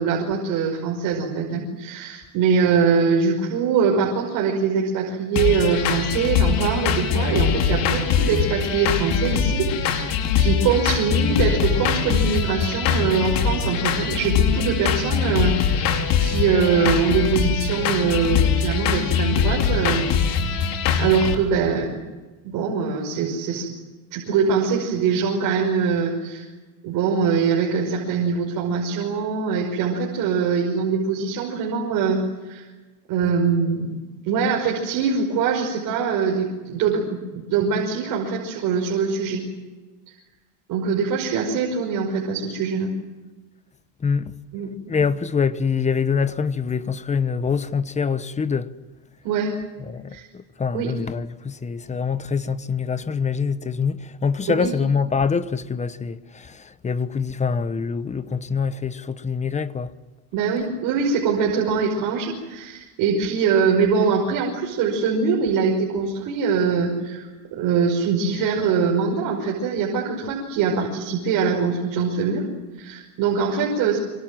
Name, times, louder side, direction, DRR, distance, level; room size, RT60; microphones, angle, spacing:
voice 1, 0.0-20.2 20.5-22.0 22.4-23.7 24.1-26.5 26.8-32.7 33.1-34.0 34.3-37.1 37.3-39.4 40.1-40.2 40.7-42.9 44.5-44.7 49.2-49.5 50.1-50.2 50.7-50.9 54.5-54.7 60.3-72.5 72.8-74.0, right 5 dB, 55° right, 5.7 m, -23 dB
sound 1, 5.4-21.3, left 7 dB, 60° left, 4.6 m, -22 dB
voice 2, 44.0-44.3 44.9-48.7 49.8-59.9, left 5 dB, 20° left, 1.0 m, -25 dB
26.5 x 25.5 x 7.7 m
cardioid pair, 135°, 39 cm